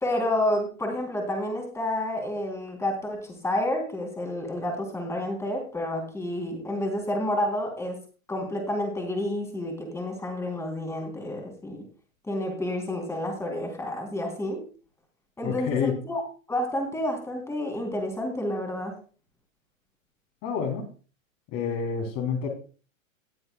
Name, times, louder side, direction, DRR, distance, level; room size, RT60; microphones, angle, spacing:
voice 1, 0.0-8.0 8.3-11.8 12.2-14.6 15.4-16.2 16.5-19.0, left 1 dB, 5° left, 2 dB, 3.6 m, -29 dB
voice 2, 15.4-15.9 20.4-20.9 21.5-22.5, left 6 dB, 35° left, 4 dB, 3.9 m, -28 dB
19.5 x 8.0 x 2.4 m, 0.36 s
hypercardioid pair, 130°, 41 cm